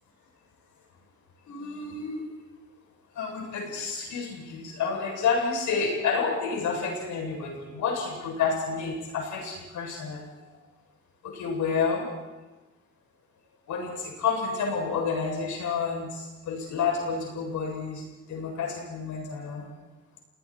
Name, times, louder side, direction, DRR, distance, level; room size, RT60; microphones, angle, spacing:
voice 1, 1.5-2.2 3.1-10.6 11.2-12.1 13.7-19.6, left 5 dB, 75° left, -1 dB, 7.9 m, -30 dB
30.0 x 19.0 x 4.7 m, 1.1 s
cardioid pair, 90°, 30 cm